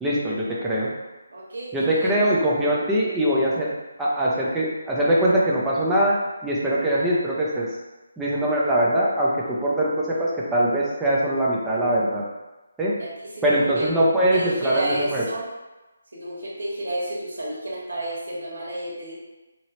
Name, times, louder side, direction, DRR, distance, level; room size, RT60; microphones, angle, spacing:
voice 1, 0.0-0.9 1.7-3.7 4.0-6.1 6.4-7.7 8.2-12.2 12.8-12.9 13.4-15.2, right 1 dB, 5° right, -6 dB, 0.5 m, -22 dB
voice 2, 1.3-2.2 13.0-13.9 14.3-15.5 16.1-19.1, right 1 dB, 70° right, -5 dB, 1.4 m, -31 dB
3.0 x 2.8 x 3.0 m, 1.1 s
hypercardioid pair, 170°, 0 cm